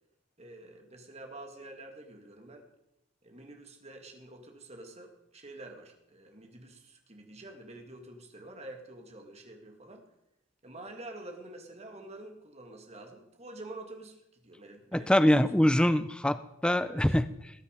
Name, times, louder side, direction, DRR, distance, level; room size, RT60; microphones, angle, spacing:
voice 1, 0.4-2.7 3.2-10.0 10.6-15.3 16.9-17.2, right 2 dB, 35° right, 3 dB, 2.0 m, -47 dB
voice 2, 14.9-17.2, left 1 dB, 5° left, 13 dB, 0.4 m, -24 dB
19.0 x 8.2 x 5.2 m, 0.84 s
head